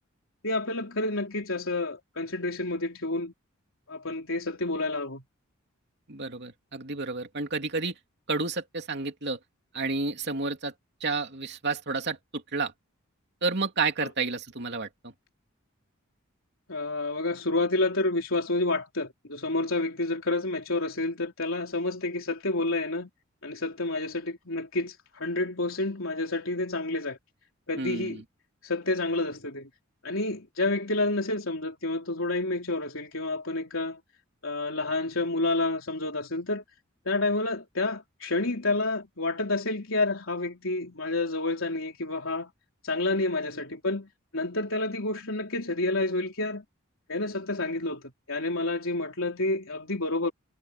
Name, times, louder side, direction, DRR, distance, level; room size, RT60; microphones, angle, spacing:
voice 1, 0.4-3.3 3.9-5.2 16.7-23.1 23.4-27.2 27.7-28.2 28.6-29.7 30.0-34.0 34.4-36.6 37.1-42.5 42.8-46.6 47.1-50.3, left 2 dB, 70° left, 3.8 m, -29 dB
voice 2, 6.1-7.9 8.3-9.4 9.7-10.7 11.0-12.7 13.4-15.1 27.8-28.2, right 4 dB, 55° right, 2.9 m, -30 dB
head